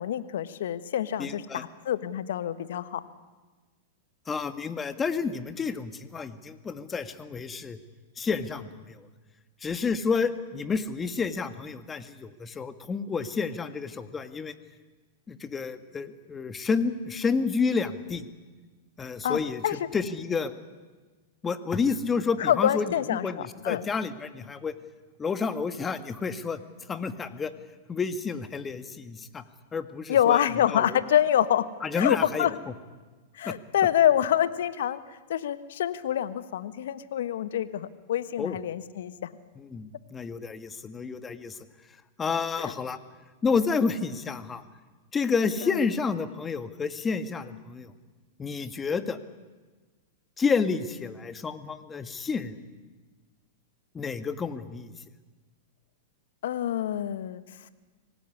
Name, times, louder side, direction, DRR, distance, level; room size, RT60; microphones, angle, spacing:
voice 1, 0.0-3.0 19.2-19.8 22.4-23.8 30.1-31.6 31.9-32.5 33.3-39.1 42.6-42.7 45.6-45.8 56.4-57.4, left 10 dB, 70° left, 13 dB, 1.4 m, -26 dB
voice 2, 1.2-1.6 4.3-7.8 8.2-9.1 9.6-14.5 15.3-18.3 19.0-20.5 21.4-24.7 25.2-26.6 26.9-27.5 27.9-29.4 29.7-31.0 31.8-32.5 33.4-33.6 38.4-38.6 39.6-41.6 42.2-43.0 43.4-44.6 45.1-47.9 48.4-49.2 50.4-52.5 53.9-54.9, left 5 dB, 20° left, 10 dB, 1.8 m, -30 dB
25.0 x 18.0 x 9.9 m, 1.3 s
hypercardioid pair, 105°, 0 cm